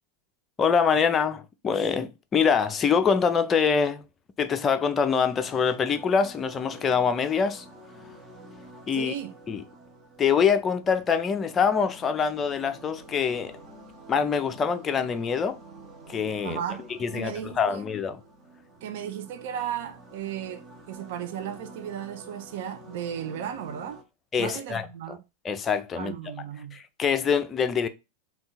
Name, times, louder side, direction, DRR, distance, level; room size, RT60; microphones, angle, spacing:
voice 1, 0.6-4.0 4.4-7.7 8.9-9.1 9.5-9.6 10.2-13.6 14.1-15.6 16.1-16.6 17.0-18.2 24.3-25.2 25.4-26.1 26.7-27.9, left 6 dB, 20° left, 0.4 m, -25 dB
sound 1, 5.3-24.0, right 1 dB, 25° right, 0.8 m, -48 dB
voice 2, 9.0-9.3 16.4-16.8 17.1-17.8 18.8-24.0 24.4-25.2 26.0-26.8, right 9 dB, 50° right, 0.5 m, -35 dB
3.5 x 2.3 x 4.1 m
figure-of-eight pair, 90°, 0 cm